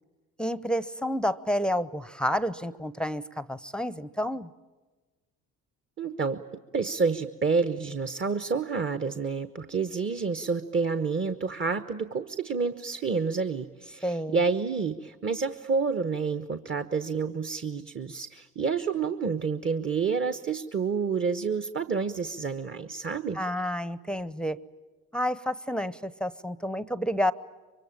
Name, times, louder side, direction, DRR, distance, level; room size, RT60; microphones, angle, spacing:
voice 1, 0.4-4.5 14.0-14.4 23.3-24.6 25.1-27.3, equal, ahead, 16 dB, 0.8 m, -29 dB
voice 2, 6.0-6.4 6.7-23.4, right 5 dB, 30° right, 11 dB, 1.1 m, -29 dB
24.0 x 24.0 x 8.9 m, 1.3 s
hypercardioid pair, 55°, 39 cm